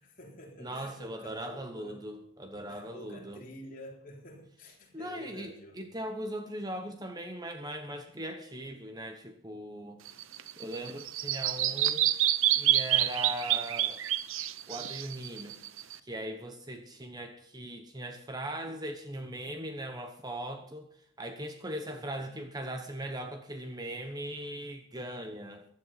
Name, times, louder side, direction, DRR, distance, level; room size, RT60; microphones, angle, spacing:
voice 1, 0.0-2.0 2.7-6.0 21.9-22.4, left 1 dB, 40° left, 3.8 m, -49 dB
voice 2, 0.6-3.4 4.9-10.0 10.6-12.2 12.4-14.0 14.7-15.6 16.0-25.7, right 1 dB, 20° right, 1.0 m, -39 dB
Bird vocalization bird call bird song, 10.1-16.0, right 12 dB, 75° right, 0.7 m, -28 dB
15.0 x 11.0 x 5.8 m
head